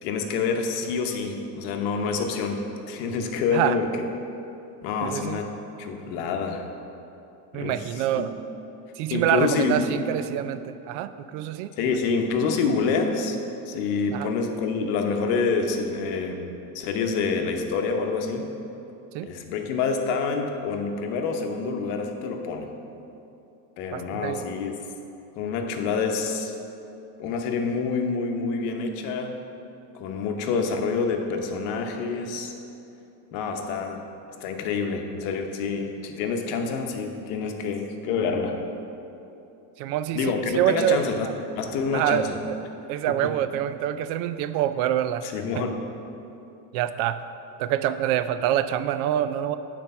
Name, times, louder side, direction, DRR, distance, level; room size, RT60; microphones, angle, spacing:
voice 1, 0.0-3.9 4.8-5.5 5.8-6.7 7.5-8.3 9.1-9.9 11.8-13.4 13.7-16.5 16.7-18.5 19.2-22.7 23.8-24.7 25.4-26.5 27.2-29.4 29.9-32.5 33.3-34.0 34.4-38.6 40.1-41.3 41.6-42.4 43.2-43.3 45.2-45.8, left 5 dB, 80° left, 4 dB, 0.9 m, -27 dB
voice 2, 5.0-5.4 7.5-8.3 9.0-11.7 14.1-14.3 19.1-19.3 23.9-24.5 39.8-41.3 41.9-42.6 42.9-45.2 46.7-47.2 47.6-49.6, right 11 dB, 80° right, 12 dB, 0.5 m, -26 dB
7.7 x 4.5 x 5.5 m, 2.8 s
cardioid pair, 155°, 41 cm